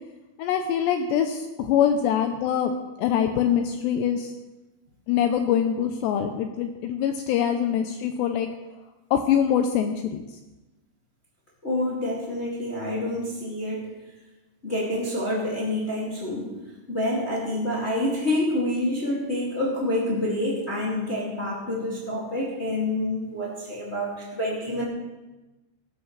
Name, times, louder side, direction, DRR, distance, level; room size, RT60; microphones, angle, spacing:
voice 1, 0.4-2.7 3.0-4.3 5.1-8.5 9.1-10.2, left 9 dB, 80° left, 6 dB, 2.5 m, -24 dB
voice 2, 11.6-13.9 14.6-16.5 16.9-24.8, left 1 dB, 35° left, -5 dB, 1.0 m, -27 dB
16.0 x 13.0 x 3.2 m, 1.1 s
omnidirectional pair, 5.6 m